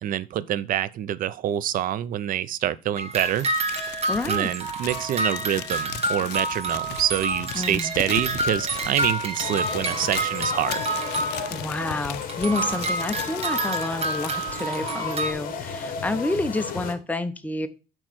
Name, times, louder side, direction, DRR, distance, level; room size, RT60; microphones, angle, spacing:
voice 1, 0.0-3.5 4.2-10.8, right 11 dB, 55° right, 0.5 m, -26 dB
sound 1, 2.9-11.8 12.2-15.3, right 3 dB, 35° right, 1.2 m, -29 dB
Crumpling crinkling, 3.2-15.3, left 16 dB, 85° left, 0.4 m, -38 dB
voice 2, 4.1-4.5 7.5-8.0 11.5-17.7, left 2 dB, 10° left, 0.7 m, -29 dB
sound 2, 9.4-16.9, left 7 dB, 55° left, 1.1 m, -33 dB
8.7 x 3.1 x 6.1 m
cardioid pair, 110°, 17 cm